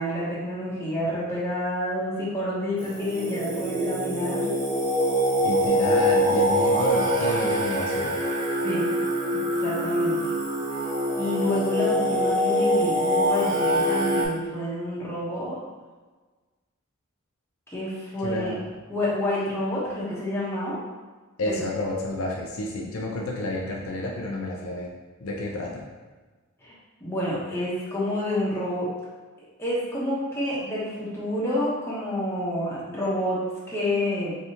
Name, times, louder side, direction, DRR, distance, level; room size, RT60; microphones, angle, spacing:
voice 1, 0.0-4.5 8.6-8.8 9.5-10.3 11.2-15.6 17.7-18.6 18.9-20.8 21.5-21.6 26.6-26.7 27.0-28.9 29.6-34.4, left 1 dB, 10° left, -8 dB, 1.1 m, -28 dB
Singing, 2.8-14.3, equal, 20° right, 0.8 m, -24 dB
voice 2, 5.4-8.1 18.2-18.7 21.4-24.9 25.2-25.8, left 1 dB, 65° left, -2 dB, 0.6 m, -30 dB
4.0 x 3.4 x 2.9 m, 1.3 s
head